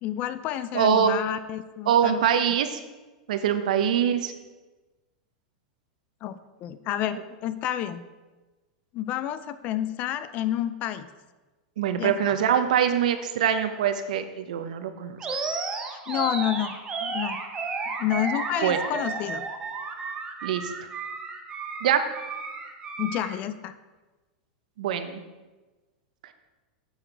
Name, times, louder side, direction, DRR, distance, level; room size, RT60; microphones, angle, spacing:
voice 1, 0.0-2.2 6.2-8.0 8.9-11.1 12.0-12.4 15.9-17.4 17.9-19.5 23.0-23.7, left 12 dB, 40° left, 13 dB, 0.4 m, -30 dB
voice 2, 0.7-1.2 1.9-2.8 3.3-4.3 11.8-15.2 18.6-18.8 20.4-20.7 21.8-22.1 24.8-25.2, right 8 dB, 80° right, 9 dB, 0.7 m, -23 dB
Animal, 15.2-23.4, right 4 dB, 20° right, 0.9 m, -33 dB
7.1 x 5.8 x 4.6 m, 1.2 s
supercardioid pair, 140°, 4 cm